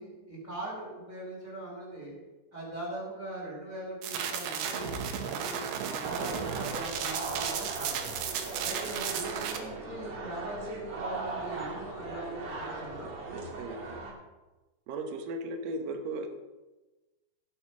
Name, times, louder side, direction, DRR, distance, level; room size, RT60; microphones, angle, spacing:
voice 1, 0.0-2.1 2.5-8.2 8.6-13.1, right 1 dB, 20° right, -4 dB, 4.8 m, -40 dB
sound 1, 4.0-9.6, right 8 dB, 90° right, 3.4 m, -34 dB
sound 2, 6.0-14.1, right 3 dB, 50° right, 2.9 m, -39 dB
voice 2, 13.6-14.0 14.9-16.3, right 2 dB, 65° right, 5 dB, 2.4 m, -36 dB
16.5 x 6.5 x 6.0 m, 1.1 s
omnidirectional pair, 4.9 m